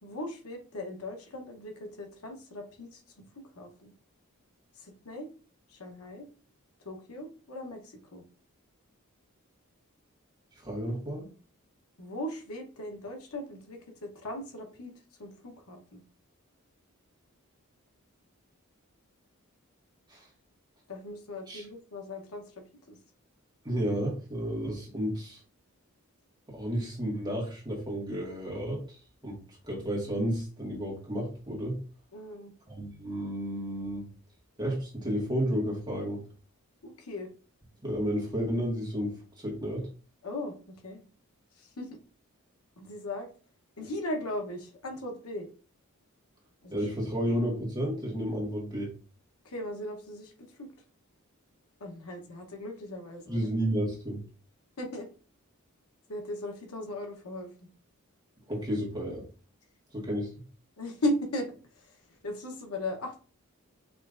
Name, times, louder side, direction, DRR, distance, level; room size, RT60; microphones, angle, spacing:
voice 1, 0.0-3.9 4.7-5.3 5.7-6.3 6.8-8.2 12.0-14.9 15.2-16.0 20.9-22.4 22.9-23.0 32.1-32.5 36.8-37.3 40.2-41.0 41.6-41.9 42.8-43.3 43.8-45.5 46.6-46.8 49.4-50.7 51.8-53.4 54.8-55.1 56.1-57.5 60.8-62.0 62.2-63.2, left 1 dB, 80° left, 3 dB, 1.0 m, -38 dB
voice 2, 10.6-11.2 20.1-20.3 21.5-21.6 23.6-25.4 26.5-29.0 29.2-29.4 29.6-31.8 32.7-34.0 34.6-36.2 37.8-39.9 46.7-48.9 53.3-54.2 58.5-59.2 59.9-60.3, equal, 20° right, -4 dB, 1.5 m, -32 dB
4.8 x 3.1 x 2.5 m, 0.37 s
head